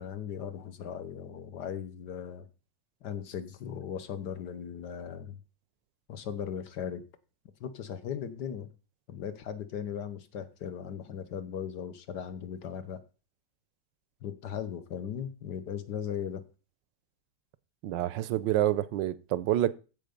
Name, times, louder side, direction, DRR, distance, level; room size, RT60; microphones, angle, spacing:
voice 1, 0.0-2.5 3.0-5.4 6.1-7.0 7.6-8.7 9.1-13.0 14.2-16.4, left 8 dB, 70° left, 1.6 m, -38 dB
voice 2, 17.8-19.7, right 13 dB, 80° right, 1.3 m, -28 dB
14.5 x 5.2 x 5.2 m
omnidirectional pair, 2.0 m